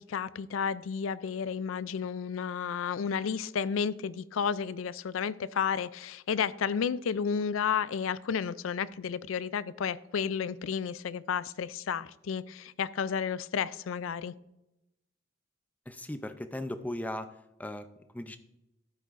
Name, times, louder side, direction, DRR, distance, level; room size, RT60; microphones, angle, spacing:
voice 1, 0.0-14.3, left 7 dB, 85° left, 18 dB, 0.4 m, -32 dB
voice 2, 15.9-17.3 17.6-17.9 18.1-18.4, left 1 dB, 10° left, 9 dB, 0.5 m, -37 dB
13.0 x 8.1 x 2.5 m, 0.91 s
head